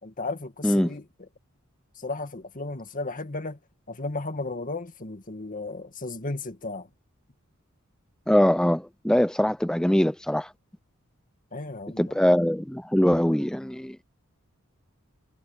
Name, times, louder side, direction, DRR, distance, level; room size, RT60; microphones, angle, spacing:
voice 1, 0.0-1.0 2.0-3.6 3.9-6.9 11.5-12.2, left 3 dB, 40° left, 2.0 m, -34 dB
voice 2, 0.6-1.0 8.3-10.5 12.0-14.0, equal, 5° left, 0.4 m, -22 dB
head